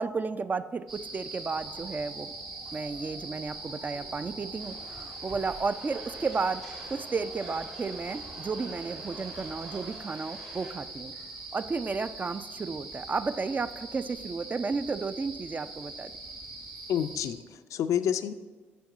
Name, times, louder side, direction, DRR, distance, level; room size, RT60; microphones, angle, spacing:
voice 1, 0.0-2.3 2.7-6.6 6.9-11.1 11.5-16.1, right 4 dB, 25° right, 13 dB, 0.3 m, -33 dB
sound 1, 0.9-17.3, right 2 dB, 85° right, 2.0 m, -42 dB
sound 2, 1.5-10.0, right 2 dB, 45° right, 1.2 m, -53 dB
sound 3, 4.6-10.7, right 2 dB, 70° right, 1.5 m, -49 dB
voice 2, 16.9-18.3, left 9 dB, 55° left, 12 dB, 0.4 m, -29 dB
9.2 x 6.5 x 2.5 m, 1.4 s
figure-of-eight pair, 45°, 6 cm